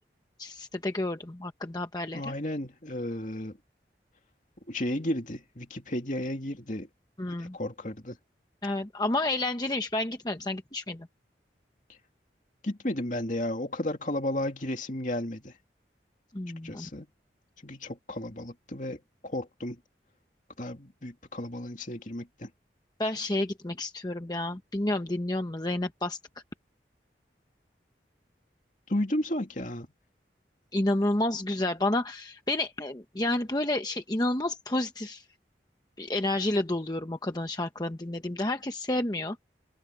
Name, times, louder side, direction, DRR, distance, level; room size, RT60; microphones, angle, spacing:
voice 1, 0.4-2.3 7.2-7.6 8.6-11.1 16.3-16.9 23.0-26.2 30.7-35.2 36.0-39.4, left 1 dB, 20° left, 0.9 m, -30 dB
voice 2, 2.1-3.6 4.7-6.9 7.3-8.2 12.6-15.5 16.6-17.1 17.6-19.8 20.6-22.5 28.9-29.9, left 1 dB, 45° left, 2.5 m, -33 dB
head